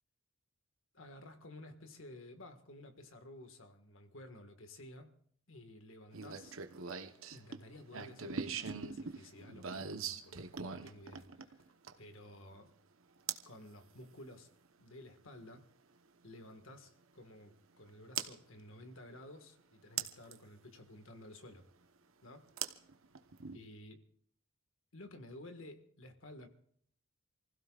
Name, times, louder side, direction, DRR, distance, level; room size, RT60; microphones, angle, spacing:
voice 1, 0.9-5.1 5.5-6.6 7.3-10.4 10.7-11.7 12.0-12.7 13.5-14.5 14.8-15.7 16.2-21.6 22.2-22.4 23.5-24.0 24.9-26.5, left 1 dB, 65° left, 7 dB, 1.7 m, -53 dB
sound 1, 6.1-12.1 13.3-13.5 15.4-15.5 18.2-18.3 20.0-20.4 22.6-23.6, right 6 dB, 70° right, 1.0 m, -41 dB
29.0 x 16.0 x 2.5 m, 0.62 s
head